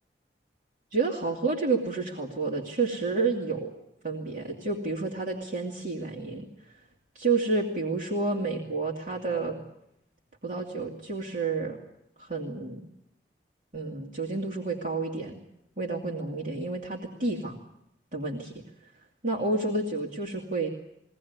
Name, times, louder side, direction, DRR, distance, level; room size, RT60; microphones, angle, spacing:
voice 1, 0.9-3.7 4.0-6.8 7.1-9.6 10.4-11.8 12.2-12.9 13.7-15.4 15.8-17.6 18.1-18.5 18.8-18.9 19.2-20.7, right 3 dB, 50° right, -2 dB, 2.5 m, -30 dB
22.5 x 18.5 x 9.5 m, 0.81 s
head